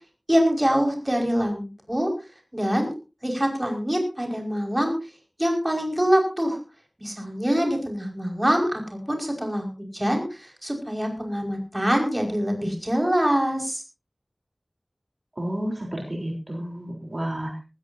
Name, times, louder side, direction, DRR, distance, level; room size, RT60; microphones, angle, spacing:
voice 1, 0.3-2.1 2.5-2.9 3.2-4.9 5.4-6.6 7.0-13.8, equal, 20° right, 2 dB, 5.4 m, -24 dB
voice 2, 15.4-17.6, right 1 dB, 50° right, 1 dB, 3.8 m, -31 dB
19.5 x 15.5 x 2.8 m, 0.31 s
wide cardioid pair, 45°, 0 cm